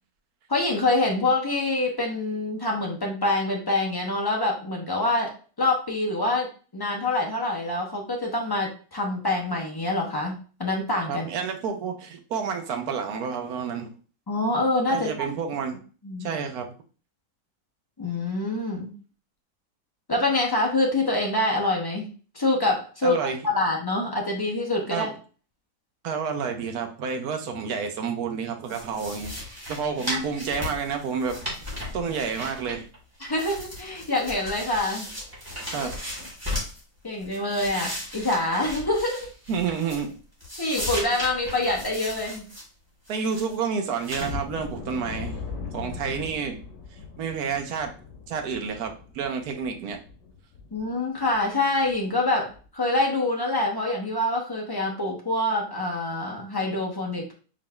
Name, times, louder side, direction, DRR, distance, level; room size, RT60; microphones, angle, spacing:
voice 1, 0.5-5.3 5.6-6.5 6.7-11.3 14.3-15.3 16.0-16.3 18.0-18.9 20.1-22.1 22.3-23.2 23.4-25.1 30.5-30.6 33.2-35.1 35.7-35.9 37.0-39.2 40.6-42.5 50.7-57.3, left 2 dB, 35° left, 0 dB, 0.4 m, -26 dB
voice 2, 11.1-13.9 14.9-15.8 16.2-16.7 23.0-23.4 24.9-25.1 26.0-29.4 29.7-32.9 35.7-36.0 39.5-40.1 43.1-45.4 45.7-46.6 47.2-47.9 48.3-50.0, right 6 dB, 65° right, 5 dB, 1.2 m, -29 dB
sound 1, 28.7-33.0 33.2-36.8 37.2-40.1 40.4-42.6 43.1-43.5 44.0-44.3, left 1 dB, 15° right, 1.5 m, -36 dB
sound 2, 44.2-50.9 51.3-51.4 51.8-52.0 52.5-52.6, left 5 dB, 75° left, 1.7 m, -39 dB
4.9 x 3.9 x 2.2 m, 0.38 s
omnidirectional pair, 1.8 m